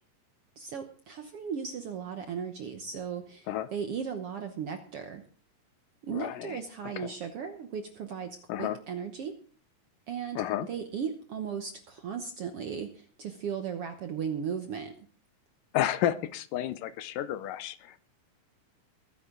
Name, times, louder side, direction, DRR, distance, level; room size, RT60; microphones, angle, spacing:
voice 1, 0.6-5.2 6.0-9.3 10.1-14.9, right 7 dB, 65° right, 7 dB, 1.5 m, -36 dB
voice 2, 6.1-7.1 8.5-8.8 10.4-10.7 15.7-18.0, left 12 dB, 80° left, 14 dB, 2.4 m, -32 dB
21.0 x 10.0 x 3.8 m, 0.43 s
omnidirectional pair, 3.9 m